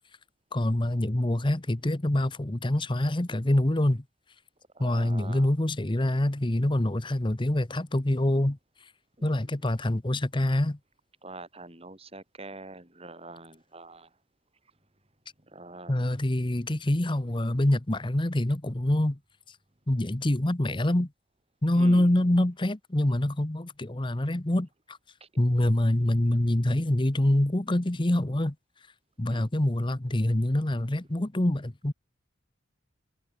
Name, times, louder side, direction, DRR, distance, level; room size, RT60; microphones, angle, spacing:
voice 1, 0.5-4.0 4.8-8.6 9.2-10.8 15.9-19.2 19.9-21.1 21.6-25.0 25.4-28.5 29.2-31.9, left 1 dB, 25° left, 1.0 m, -25 dB
voice 2, 4.7-5.5 9.2-9.3 11.2-14.1 15.5-16.0 21.8-22.1 25.2-25.3 26.2-26.3 29.3-29.5, right 2 dB, 30° right, 3.2 m, -44 dB
head